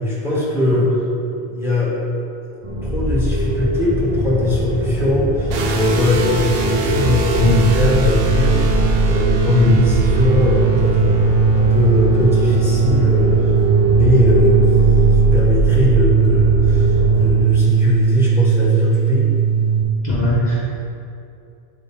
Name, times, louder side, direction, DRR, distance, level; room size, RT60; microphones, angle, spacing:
voice 1, 0.0-2.0 2.8-8.7 9.0-11.3 11.5-13.5 13.9-19.3, left 1 dB, ahead, -7 dB, 1.4 m, -20 dB
sound 1, 2.6-17.3, equal, 35° right, 1.1 m, -22 dB
sound 2, 5.5-19.8, right 6 dB, 70° right, 0.8 m, -18 dB
voice 2, 7.4-7.8 9.5-9.7 20.0-20.7, left 1 dB, 45° left, -7 dB, 1.2 m, -18 dB
8.6 x 4.0 x 3.5 m, 2.5 s
omnidirectional pair, 1.1 m